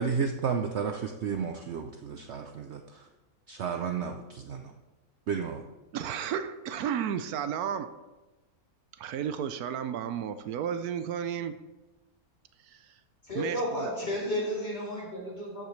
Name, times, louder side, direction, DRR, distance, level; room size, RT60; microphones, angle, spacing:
voice 1, 0.0-3.1 3.5-4.7 5.3-5.6, right 6 dB, 60° right, 5 dB, 0.8 m, -32 dB
voice 2, 5.9-7.9 9.0-11.6 13.4-13.6 13.8-13.9, right 8 dB, 80° right, 11 dB, 1.1 m, -32 dB
voice 3, 13.2-15.7, equal, 40° left, -4 dB, 4.1 m, -32 dB
13.5 x 8.1 x 3.2 m, 1.1 s
omnidirectional pair, 1.6 m